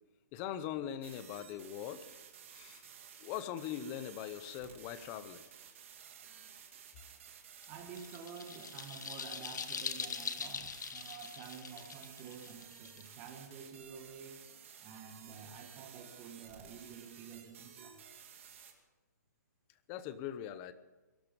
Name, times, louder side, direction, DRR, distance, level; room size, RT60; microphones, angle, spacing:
voice 1, 0.3-2.1 2.5-2.9 3.2-5.4 19.9-20.7, left 10 dB, 20° left, 13 dB, 0.7 m, -41 dB
sound 1, 1.0-18.7, right 8 dB, 45° right, 2.3 m, -54 dB
sound 2, 7.6-13.4, left 6 dB, 75° left, 1.3 m, -42 dB
voice 2, 7.7-14.4 14.8-18.0, right 6 dB, 20° right, 5 dB, 1.5 m, -50 dB
22.0 x 12.5 x 5.2 m, 1.2 s
hypercardioid pair, 170°, 10 cm